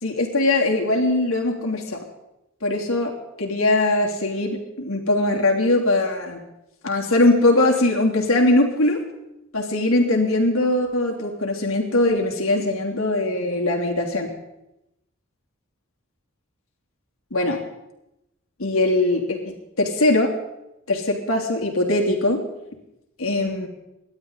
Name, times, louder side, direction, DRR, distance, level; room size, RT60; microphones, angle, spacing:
voice 1, 0.0-2.0 2.6-3.1 3.4-6.4 6.8-9.0 9.5-14.3 17.3-17.6 18.6-20.3 20.9-22.4 23.2-23.7, left 2 dB, 80° left, 0 dB, 3.2 m, -21 dB
29.0 x 12.0 x 4.1 m, 0.90 s
head